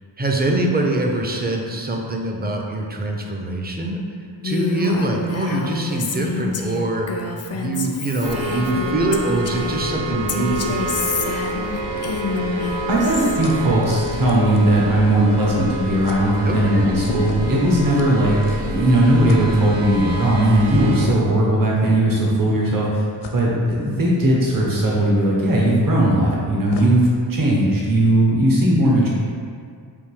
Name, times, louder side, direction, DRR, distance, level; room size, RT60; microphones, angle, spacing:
voice 1, 0.2-4.0 4.4-7.2 7.5-10.9 16.4-16.8, right 2 dB, 20° right, 1 dB, 0.5 m, -24 dB
Female speech woman speaking, 4.4-9.8 10.3-13.4, left 3 dB, 35° left, 0.4 m, -28 dB
sound 1, 8.2-21.1, equal, 65° right, 0.6 m, -28 dB
voice 2, 12.9-23.0 23.3-29.1, right 1 dB, 45° right, -4 dB, 1.0 m, -18 dB
sound 2, 13.4-15.3 15.6-15.8 16.0-16.2 17.0-18.9 19.3-19.4 20.9-21.5 22.2-22.3 23.2-23.4 24.5-25.0 25.9-26.0 26.3-26.9, left 3 dB, 75° left, 0.6 m, -35 dB
3.6 x 2.6 x 4.7 m, 2.2 s
cardioid pair, 65°, 47 cm